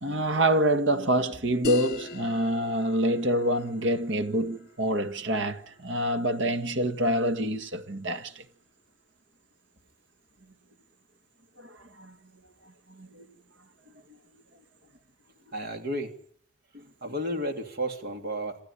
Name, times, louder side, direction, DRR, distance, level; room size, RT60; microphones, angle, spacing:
voice 1, 0.0-8.4 11.6-12.2 12.9-13.3 16.7-16.8, right 1 dB, 65° right, 1.7 m, -27 dB
sound 1, 1.6-6.7, left 3 dB, 50° left, 2.6 m, -42 dB
voice 2, 15.5-16.1 17.0-18.6, right 1 dB, 50° right, 3.2 m, -32 dB
27.5 x 13.0 x 9.8 m
head